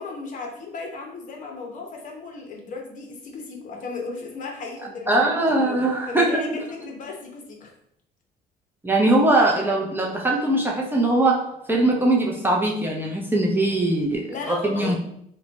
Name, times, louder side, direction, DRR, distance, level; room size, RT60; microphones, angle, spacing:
voice 1, 0.0-5.3 6.1-7.7 14.3-15.0, left 4 dB, 50° left, 1 dB, 0.9 m, -35 dB
voice 2, 5.1-6.4 8.8-15.0, right 2 dB, 10° right, -1 dB, 0.6 m, -21 dB
3.1 x 2.2 x 4.0 m, 0.70 s
cardioid pair, 110°, 17 cm